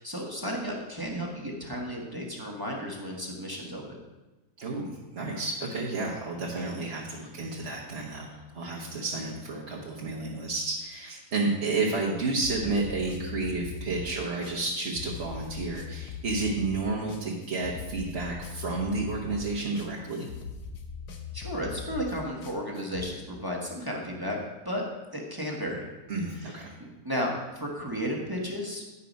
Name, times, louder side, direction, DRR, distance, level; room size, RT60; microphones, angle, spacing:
voice 1, 0.0-4.0 21.3-24.4 24.6-24.8 25.1-25.9 26.3-28.8, equal, 15° right, -1 dB, 1.0 m, -33 dB
voice 2, 5.1-20.3 26.1-26.7, right 3 dB, 45° right, -3 dB, 1.2 m, -31 dB
sound 1, 12.4-23.1, left 5 dB, 75° left, 1.5 m, -40 dB
9.9 x 5.7 x 5.2 m, 1.1 s
omnidirectional pair, 1.8 m